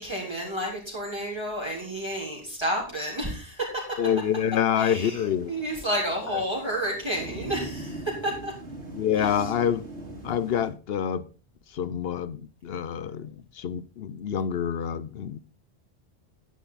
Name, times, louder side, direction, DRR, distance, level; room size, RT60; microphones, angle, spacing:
voice 1, 0.0-4.0 4.8-8.5 9.1-9.5, right 1 dB, 25° right, 3.8 m, -31 dB
voice 2, 4.0-5.5 8.9-9.8 10.2-11.3 11.7-15.4, left 9 dB, 65° left, 0.9 m, -27 dB
Thunder / Rain, 4.2-10.7, right 1 dB, 85° right, 3.8 m, -41 dB
10.5 x 10.5 x 4.0 m
omnidirectional pair, 1.1 m